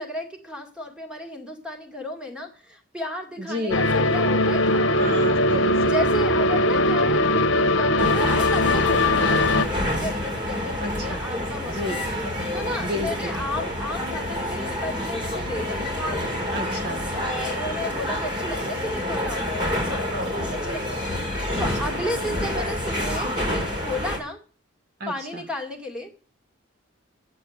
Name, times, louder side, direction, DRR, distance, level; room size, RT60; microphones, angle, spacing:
voice 1, 0.0-5.0 5.9-16.0 17.1-24.4 25.1-26.1, left 1 dB, 5° right, 3 dB, 2.2 m, -34 dB
sound 1, 3.7-9.7, left 1 dB, 65° left, 1.3 m, -20 dB
voice 2, 5.0-5.9 10.8-11.2 11.7-12.0 12.8-13.3 16.5-17.0 21.5-21.6 25.0-25.1, equal, 50° right, 5 dB, 1.3 m, -31 dB
sound 2, 8.0-24.2, left 1 dB, 20° right, 3.4 m, -28 dB
10.5 x 8.4 x 8.0 m, 0.38 s
head